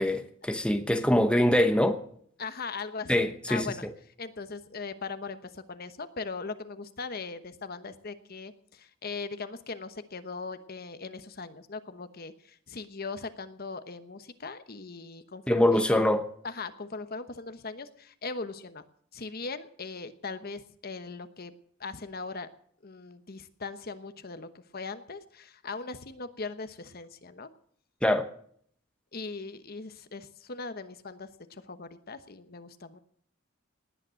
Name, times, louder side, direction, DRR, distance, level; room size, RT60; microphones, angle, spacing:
voice 1, 0.0-2.0 3.1-3.7 15.5-16.2 28.0-28.2, left 1 dB, 5° left, 0.9 m, -24 dB
voice 2, 2.4-3.9 4.2-16.1 16.4-18.8 19.1-21.5 21.8-22.5 22.8-27.5 29.1-33.0, left 4 dB, 50° left, 1.0 m, -39 dB
19.0 x 9.7 x 6.4 m
head